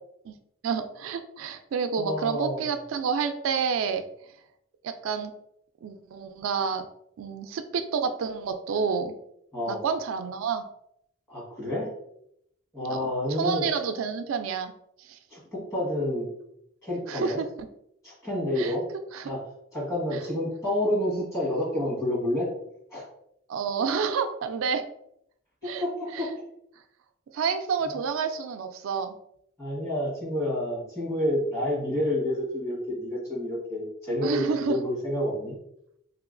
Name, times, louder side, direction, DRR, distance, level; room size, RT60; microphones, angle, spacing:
voice 1, 0.6-4.0 4.8-5.3 5.8-6.9 7.2-9.1 9.7-10.6 12.9-14.7 15.0-15.2 17.1-17.5 18.6-18.7 19.1-19.3 23.5-24.8 25.6-25.8 26.1-26.3 27.3-29.2 34.2-34.8, right 6 dB, 85° right, 8 dB, 0.3 m, -29 dB
voice 2, 2.0-2.7 9.5-9.8 11.3-11.9 12.7-13.6 15.3-16.3 16.8-17.4 18.0-18.8 19.2-19.4 19.7-22.5 22.9-23.1 25.6-26.3 29.6-35.5, left 1 dB, 15° left, -6 dB, 1.4 m, -29 dB
3.3 x 2.9 x 2.5 m, 0.75 s
head